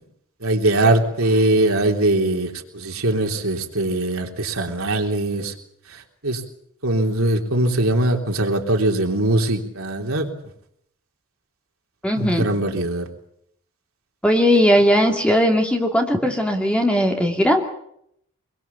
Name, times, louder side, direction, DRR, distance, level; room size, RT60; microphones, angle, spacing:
voice 1, 0.4-5.5 6.2-6.4 6.8-10.3 12.2-13.0, right 1 dB, 70° right, 2 dB, 3.4 m, -21 dB
voice 2, 12.0-12.5 14.2-17.6, equal, 5° left, 2 dB, 2.6 m, -18 dB
24.5 x 22.5 x 7.2 m, 0.73 s
head